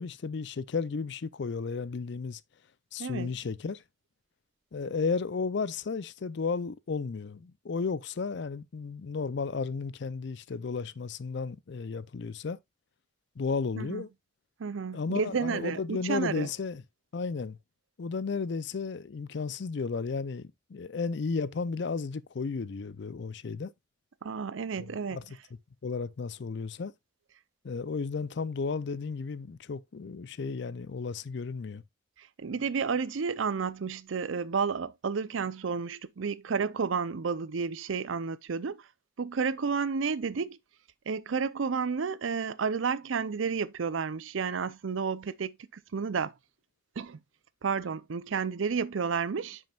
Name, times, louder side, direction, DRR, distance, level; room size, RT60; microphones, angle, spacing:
voice 1, 0.0-2.4 2.9-3.8 4.7-12.6 13.4-14.1 14.9-16.8 17.1-17.6 18.0-23.7 24.8-25.2 25.8-26.9 27.6-31.8, left 4 dB, 60° left, 0.5 m, -33 dB
voice 2, 3.0-3.3 13.8-14.0 14.6-16.5 24.2-25.2 32.4-38.8 39.2-40.6 41.1-46.3 47.0-47.2 47.6-49.6, right 5 dB, 80° right, 0.5 m, -31 dB
8.6 x 6.3 x 2.3 m
head